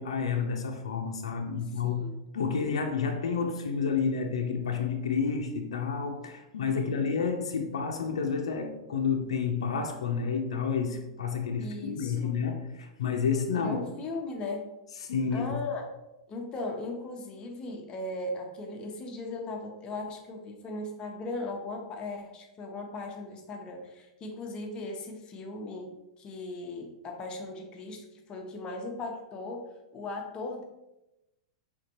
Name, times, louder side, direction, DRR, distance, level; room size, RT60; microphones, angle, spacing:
voice 1, 0.0-2.1 2.3-13.8 15.0-15.6, left 5 dB, 85° left, 0.6 m, -30 dB
voice 2, 1.8-2.2 11.6-12.4 13.5-14.6 15.3-15.9 16.3-25.9 26.2-29.6 29.9-30.6, left 2 dB, 30° left, 1.0 m, -38 dB
4.9 x 3.5 x 3.0 m
hypercardioid pair, 115°, 3 cm